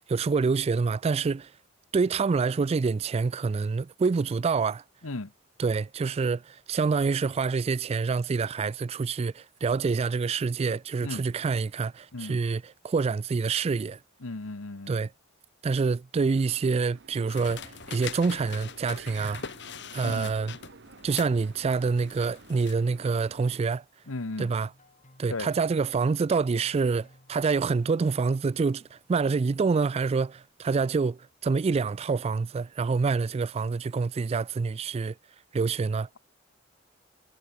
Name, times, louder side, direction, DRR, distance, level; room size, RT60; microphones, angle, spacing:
voice 1, 0.0-1.5 1.9-4.8 5.6-14.0 14.9-15.1 15.6-19.4 19.9-20.5 21.0-23.8 24.4-24.7 25.2-35.1 35.5-36.1, right 4 dB, 30° right, 0.3 m, -27 dB
voice 2, 14.2-15.0 20.0-20.3 24.1-24.5 25.3-25.5, left 2 dB, 80° left, 1.3 m, -35 dB
sound 1, 16.2-23.6, right 4 dB, 55° right, 1.3 m, -51 dB
sound 2, 17.3-22.7, left 7 dB, 60° left, 2.0 m, -43 dB
sound 3, 24.0-29.2, left 1 dB, 35° left, 4.6 m, -59 dB
head